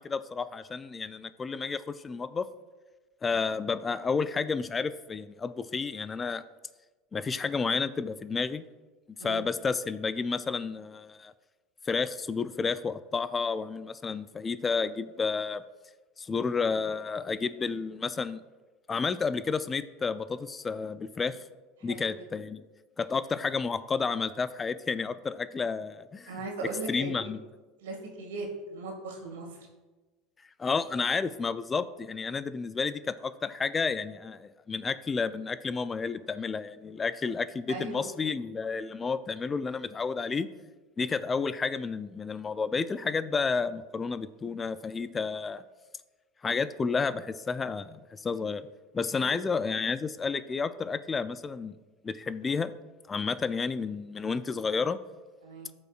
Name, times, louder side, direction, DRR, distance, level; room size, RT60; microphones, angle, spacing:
voice 1, 0.0-2.5 3.2-6.4 7.1-8.6 9.2-11.3 11.9-15.6 16.2-18.4 18.9-21.4 21.8-22.6 23.0-26.4 26.9-27.4 30.6-40.5 41.0-45.6 46.4-48.6 48.9-51.8 52.0-52.7 53.1-55.0, left 5 dB, 25° left, 13 dB, 0.4 m, -31 dB
voice 2, 21.8-22.1 26.3-27.1 27.8-29.5 37.7-38.1 49.1-49.4 55.4-55.7, right 3 dB, 90° right, 1 dB, 2.0 m, -38 dB
14.5 x 5.4 x 2.4 m, 1.2 s
supercardioid pair, 100°, 0 cm